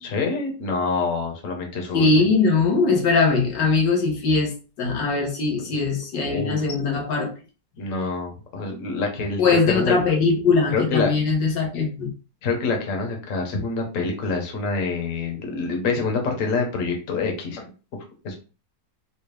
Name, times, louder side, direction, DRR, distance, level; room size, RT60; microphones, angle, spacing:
voice 1, 0.0-2.3 5.6-5.7 6.3-6.6 7.8-10.0 10.7-11.1 12.4-17.7 18.2-18.3, left 4 dB, 50° left, 1.3 m, -26 dB
voice 2, 1.9-7.3 9.4-12.1, left 4 dB, 90° left, 1.7 m, -21 dB
4.4 x 2.3 x 3.3 m
omnidirectional pair, 1.9 m